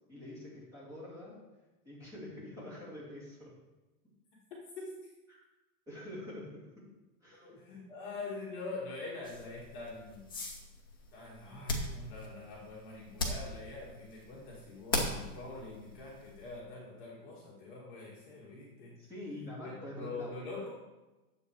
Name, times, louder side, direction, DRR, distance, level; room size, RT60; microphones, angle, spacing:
voice 1, 0.1-1.4 1.8-3.5 5.3-5.4 5.9-6.9 7.2-7.5 19.0-20.4, left 1 dB, 5° right, -8 dB, 2.9 m, -46 dB
voice 2, 4.8-5.1 7.3-10.4 11.1-19.1 19.6-20.7, left 3 dB, 30° left, -4 dB, 2.0 m, -44 dB
sound 1, 9.2-16.6, left 2 dB, 15° left, 0.4 m, -40 dB
9.9 x 7.6 x 4.8 m, 1.1 s
supercardioid pair, 175°, 46 cm